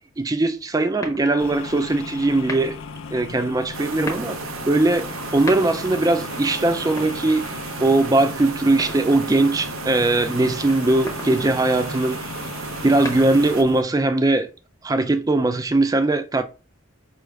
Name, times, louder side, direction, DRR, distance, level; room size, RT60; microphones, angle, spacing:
voice 1, 0.2-2.8 3.1-4.4 4.7-5.1 5.3-7.4 7.8-12.2 12.8-14.5 14.8-16.4, right 2 dB, 15° right, 0.3 m, -20 dB
sound 1, 1.0-1.6 2.4-2.9 3.8-4.4 5.2-6.0 6.8-7.7 8.8-9.4 10.8-11.4 12.7-13.6, left 1 dB, 15° left, 0.7 m, -35 dB
sound 2, 1.4-13.8, left 4 dB, 75° left, 0.4 m, -36 dB
sound 3, 3.7-13.6, right 5 dB, 75° right, 0.5 m, -34 dB
4.9 x 2.4 x 3.1 m
head